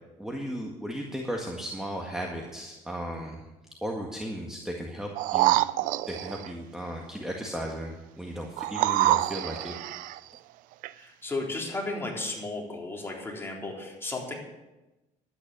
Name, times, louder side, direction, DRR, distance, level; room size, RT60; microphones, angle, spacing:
voice 1, 0.2-3.4 3.8-5.6 6.1-9.7 10.0-10.2, equal, 5° right, 0 dB, 1.7 m, -35 dB
sound 1, 5.2-6.5 8.6-10.2 10.8-10.9, right 16 dB, 75° right, 0.5 m, -26 dB
voice 2, 11.0-14.3, left 2 dB, 15° left, -2 dB, 3.9 m, -34 dB
12.0 x 9.9 x 6.8 m, 1.1 s
cardioid pair, 100°, 14 cm